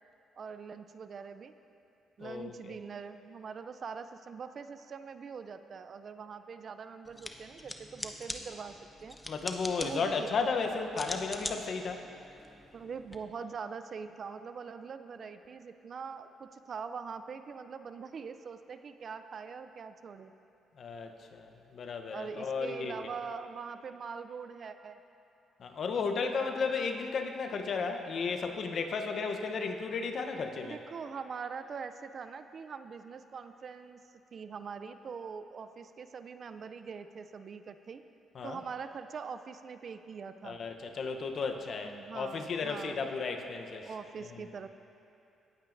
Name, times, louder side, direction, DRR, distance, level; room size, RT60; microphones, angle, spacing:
voice 1, 0.4-1.5 2.2-9.2 9.8-10.5 12.7-20.3 22.1-25.0 26.2-26.7 30.6-34.0 34.3-38.0 38.4-40.6 41.8-43.1 43.8-44.7, right 5 dB, 50° right, 10 dB, 0.4 m, -43 dB
voice 2, 2.2-2.8 9.3-12.0 20.8-23.1 25.6-30.8 38.3-38.6 40.4-43.9 44.2-44.4, left 4 dB, 55° left, 5 dB, 0.8 m, -34 dB
sound 1, 7.1-13.2, left 1 dB, 15° left, 0.7 m, -43 dB
17.0 x 8.8 x 2.6 m, 2.8 s
cardioid pair, 90°, 0 cm